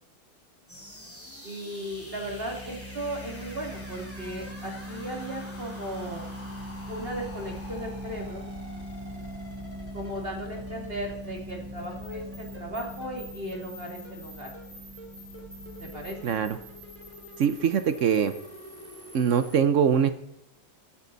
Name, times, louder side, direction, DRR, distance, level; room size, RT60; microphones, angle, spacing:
sound 1, 0.7-19.6, left 1 dB, 5° left, 2.6 m, -46 dB
voice 1, 1.4-6.3 6.9-8.5 9.9-14.5 15.8-16.2, right 1 dB, 30° right, 1 dB, 2.7 m, -36 dB
sound 2, 1.9-18.2, equal, 15° right, 1.4 m, -41 dB
voice 2, 16.2-16.6 17.4-18.3 19.1-20.1, right 7 dB, 60° right, 11 dB, 0.8 m, -23 dB
15.5 x 10.0 x 4.0 m, 0.81 s
omnidirectional pair, 2.1 m